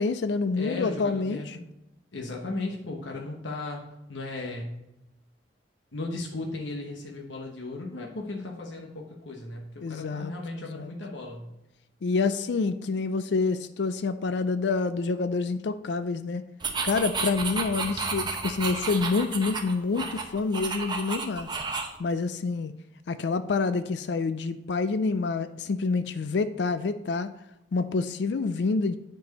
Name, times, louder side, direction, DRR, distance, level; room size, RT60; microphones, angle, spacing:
voice 1, 0.0-1.6 9.8-10.3 10.7-10.9 12.0-16.4 16.8-21.5 22.0-22.7 23.1-27.3 27.7-29.0, left 4 dB, 65° left, 12 dB, 0.4 m, -27 dB
voice 2, 0.6-1.5 2.1-3.8 4.1-4.7 5.9-11.5, left 2 dB, 90° left, 0 dB, 1.1 m, -36 dB
sound 1, 16.6-22.0, right 4 dB, 25° right, 0.9 m, -32 dB
9.5 x 4.6 x 5.3 m, 0.89 s
head